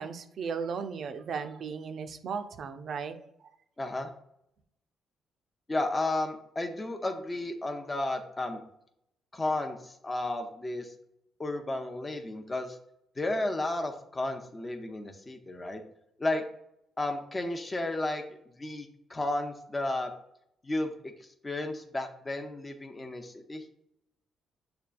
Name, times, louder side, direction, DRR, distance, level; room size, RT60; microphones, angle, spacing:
voice 1, 0.0-3.3, right 6 dB, 60° right, 8 dB, 0.4 m, -36 dB
voice 2, 3.8-4.1 5.7-8.6 9.3-10.9 11.4-12.8 13.2-15.8 16.2-16.4 17.0-18.2 18.6-20.1 20.6-21.1 21.4-23.6, left 2 dB, 25° left, 4 dB, 0.5 m, -33 dB
6.6 x 2.3 x 2.4 m, 0.75 s
cardioid pair, 90°, 0 cm